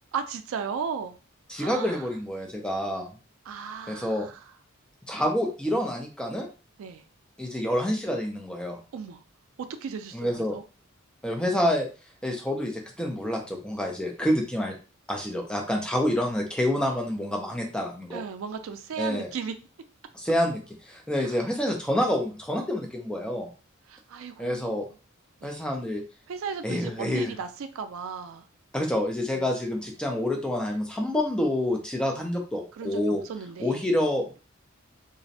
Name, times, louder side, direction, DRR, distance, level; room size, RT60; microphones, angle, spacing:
voice 1, 0.1-1.1 1.6-2.1 3.5-4.4 6.8-7.0 8.9-9.2 9.8-10.6 18.1-19.5 21.2-21.4 23.9-24.9 25.4-25.6 26.3-28.4 29.3-29.5 32.7-33.8, right 6 dB, 80° right, 8 dB, 0.3 m, -36 dB
voice 2, 1.5-3.1 3.9-4.3 5.1-6.5 7.4-8.8 10.1-10.6 11.2-11.9 12.2-14.8 15.1-18.2 19.0-19.3 20.1-20.6 20.9-23.5 24.4-24.9 25.4-26.0 26.6-27.3 28.7-33.2 33.6-34.3, left 1 dB, 5° left, 2 dB, 0.4 m, -27 dB
2.5 x 2.0 x 2.6 m, 0.34 s
head